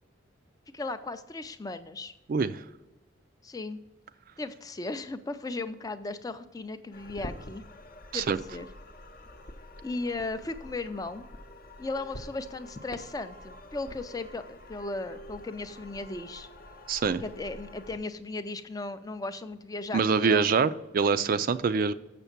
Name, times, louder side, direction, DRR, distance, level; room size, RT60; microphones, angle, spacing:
voice 1, 0.7-2.1 3.4-3.8 4.4-7.6 8.1-8.7 9.8-11.2 11.8-16.5 17.2-20.6, left 2 dB, 20° left, 10 dB, 0.4 m, -36 dB
voice 2, 2.3-2.6 8.1-8.4 16.9-17.2 19.9-21.9, right 5 dB, 45° right, 13 dB, 0.3 m, -25 dB
sound 1, 6.9-18.0, left 1 dB, 45° left, 0.7 m, -47 dB
7.1 x 6.8 x 5.9 m, 1.0 s
head